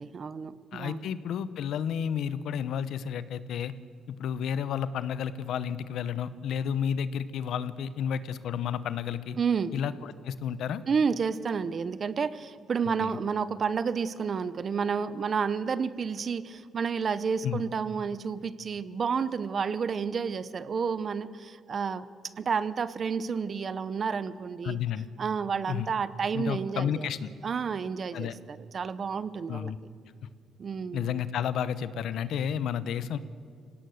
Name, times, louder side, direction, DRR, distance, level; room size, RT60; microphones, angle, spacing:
voice 1, 0.0-1.0 9.4-9.7 10.9-22.1 22.4-24.8 25.2-27.1 27.4-29.7 30.6-31.2, right 6 dB, 45° right, 16 dB, 0.9 m, -30 dB
voice 2, 0.7-3.7 4.1-9.4 9.7-10.8 13.0-13.2 17.4-17.6 24.6-25.1 25.7-25.9 26.3-27.3 28.1-28.4 29.5-29.8 30.9-33.2, left 8 dB, 75° left, 15 dB, 0.9 m, -31 dB
25.0 x 17.5 x 6.5 m, 2.3 s
cardioid pair, 90°, 0 cm